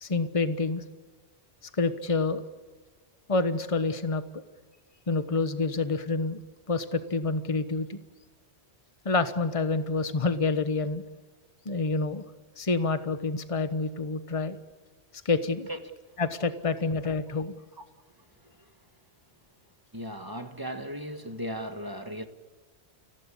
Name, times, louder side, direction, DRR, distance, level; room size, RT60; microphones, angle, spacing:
voice 1, 0.0-0.8 1.8-2.4 3.3-4.4 5.1-6.4 6.7-8.0 9.0-11.0 11.6-12.2 12.6-14.6 15.2-15.7 16.2-17.5, left 3 dB, 30° left, 1.2 m, -28 dB
voice 2, 19.9-22.3, equal, 20° right, 1.5 m, -37 dB
28.5 x 17.0 x 8.5 m
omnidirectional pair, 1.1 m